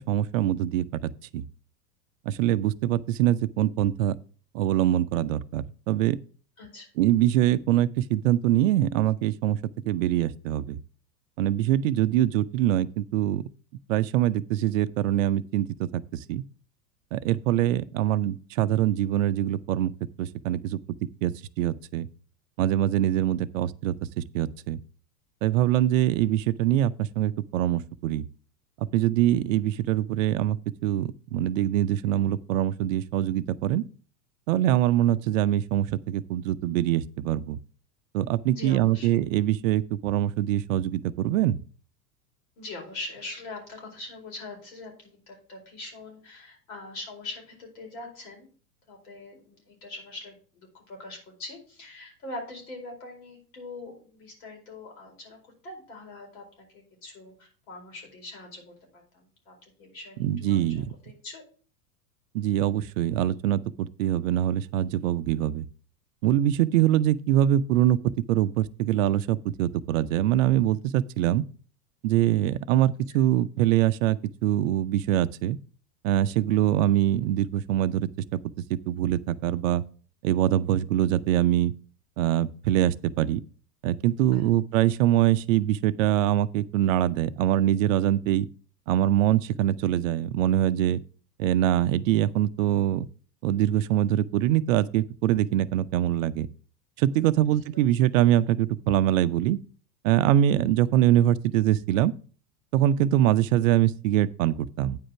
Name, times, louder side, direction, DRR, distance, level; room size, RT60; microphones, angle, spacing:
voice 1, 0.1-1.4 2.3-4.2 4.5-6.2 7.0-9.6 9.9-10.8 11.4-13.4 13.9-16.0 16.3-16.4 17.1-19.9 20.2-20.8 21.2-22.1 22.6-24.8 25.4-28.3 28.9-30.6 30.8-33.8 34.5-37.6 38.1-41.6 60.2-60.9 62.3-65.6 66.2-68.0 68.3-71.4 72.0-75.6 76.0-78.1 78.7-79.8 80.2-81.7 82.2-83.4 83.8-88.5 88.9-91.0 91.4-93.1 93.4-96.5 97.0-99.6 100.0-102.1 102.7-105.0, right 12 dB, 55° right, 0.6 m, -24 dB
voice 2, 38.5-39.1 42.6-48.5 48.9-61.4 73.1-73.2 84.3-84.5 97.4-97.8, left 2 dB, 60° left, 4.7 m, -42 dB
9.2 x 5.0 x 5.8 m
figure-of-eight pair, 90°, 49 cm